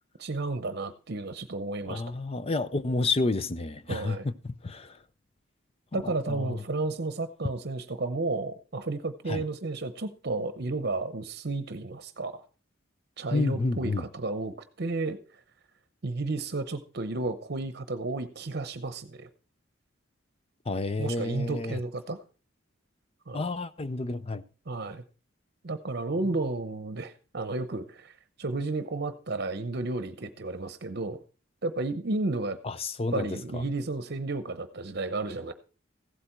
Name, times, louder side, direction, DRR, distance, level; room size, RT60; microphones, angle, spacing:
voice 1, 0.2-2.0 3.9-4.3 5.9-12.4 13.2-15.2 16.0-19.3 21.0-22.2 23.3-23.5 24.7-25.0 25.6-28.1 28.4-31.2 31.6-32.6 33.1-35.5, right 2 dB, 55° right, 0.8 m, -32 dB
voice 2, 1.9-5.0 5.9-6.6 9.3-9.4 13.3-14.0 20.7-21.8 23.3-24.4 32.6-33.6, left 3 dB, 30° left, 0.5 m, -30 dB
15.5 x 8.4 x 4.4 m
head